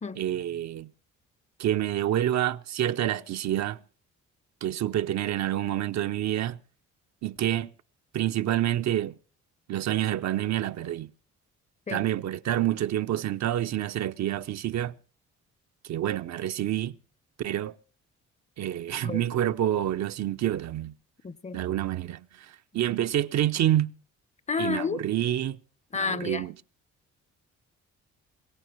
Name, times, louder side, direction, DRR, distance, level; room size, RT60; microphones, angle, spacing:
voice 1, 0.2-0.9 1.6-3.8 4.6-6.6 7.2-7.7 8.1-9.1 9.7-11.1 11.9-14.9 15.8-16.9 17.4-17.8 18.6-20.9 21.5-23.9 24.6-25.6 25.9-26.5, right 12 dB, 65° right, 0.7 m, -28 dB
voice 2, 21.2-21.6 24.5-25.0 25.9-26.5, left 5 dB, 25° left, 0.6 m, -30 dB
22.0 x 17.5 x 3.1 m
cardioid pair, 90°, 30 cm